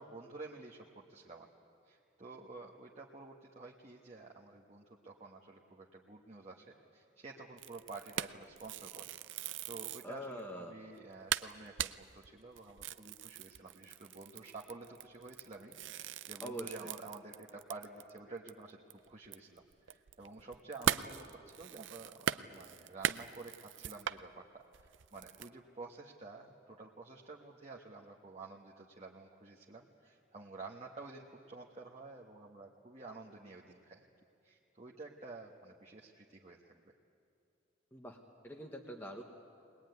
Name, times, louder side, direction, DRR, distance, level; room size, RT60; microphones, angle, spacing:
voice 1, 0.0-1.5 1.8-34.0 34.4-36.9, right 3 dB, 30° right, -1 dB, 1.2 m, -51 dB
sound 1, 7.6-10.1 10.6-10.7 11.0-11.1 11.3-18.2 18.5-18.6 18.9-24.2 24.7-25.5, right 9 dB, 65° right, 0.5 m, -39 dB
voice 2, 10.0-10.7 16.4-16.9 37.9-39.2, right 1 dB, 10° left, 2 dB, 1.1 m, -44 dB
21.5 x 20.5 x 9.4 m, 2.7 s
head